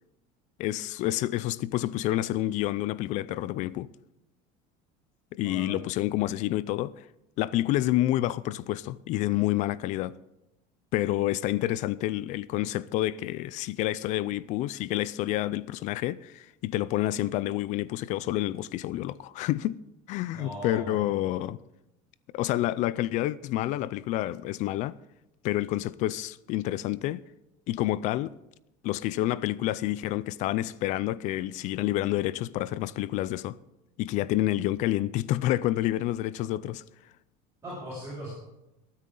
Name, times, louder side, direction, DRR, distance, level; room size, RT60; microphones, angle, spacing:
voice 1, 0.6-3.9 5.3-7.1 7.4-10.1 10.9-19.8 20.1-21.6 22.3-24.9 25.4-27.2 27.7-28.3 28.8-33.6 34.0-36.8, left 15 dB, 45° left, 0.4 m, -28 dB
voice 2, 5.4-5.8 20.3-21.0 37.6-38.3, right 1 dB, 15° right, 6.6 m, -38 dB
21.0 x 9.7 x 3.8 m
cardioid pair, 160°, 17 cm